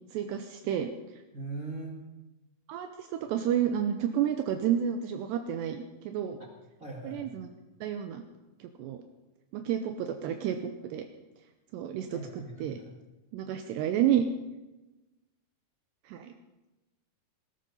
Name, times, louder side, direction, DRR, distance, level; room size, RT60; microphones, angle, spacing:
voice 1, 0.1-0.9 2.7-6.4 7.0-7.5 7.8-8.2 8.8-9.0 9.5-11.0 11.7-12.8 13.3-14.2 16.1-16.3, right 9 dB, 80° right, 6 dB, 2.9 m, -30 dB
voice 2, 1.3-1.9 6.8-7.2 12.1-12.9, right 2 dB, 35° right, -2 dB, 1.3 m, -40 dB
20.5 x 13.0 x 5.4 m, 1.1 s
omnidirectional pair, 5.2 m